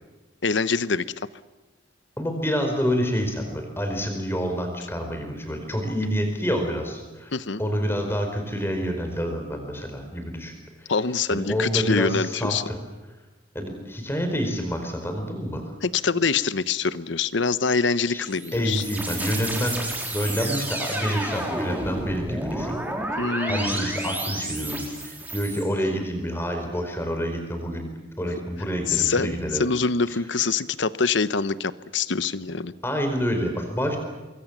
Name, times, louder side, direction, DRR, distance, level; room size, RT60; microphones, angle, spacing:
voice 1, 0.4-1.1 7.3-7.6 10.9-12.6 15.8-18.8 23.2-23.9 28.9-32.7, left 5 dB, 70° left, 15 dB, 0.9 m, -25 dB
voice 2, 2.2-7.3 7.6-10.5 10.8-10.9 11.3-12.8 13.5-15.7 18.1-18.2 18.5-23.1 23.5-27.9 28.2-29.7 30.1-30.2 32.8-34.0, equal, 10° left, 5 dB, 4.7 m, -28 dB
sound 1, 18.0-25.6, right 1 dB, 10° right, 4.4 m, -31 dB
25.5 x 23.0 x 7.4 m, 1.2 s
head